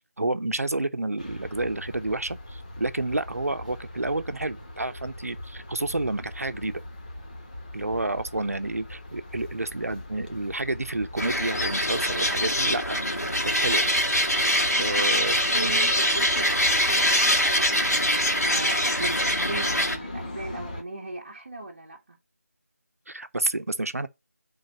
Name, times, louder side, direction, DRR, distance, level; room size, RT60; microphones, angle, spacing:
voice 1, 0.2-6.8 7.7-13.8 14.8-15.4 23.1-24.1, right 2 dB, 70° right, 0.8 m, -30 dB
sound 1, 1.2-20.8, left 1 dB, 30° left, 1.1 m, -40 dB
sound 2, 11.2-20.0, equal, 80° left, 2.2 m, -24 dB
voice 2, 14.7-22.2, right 2 dB, 35° right, 1.0 m, -38 dB
5.1 x 3.9 x 5.4 m
figure-of-eight pair, 165°, 8 cm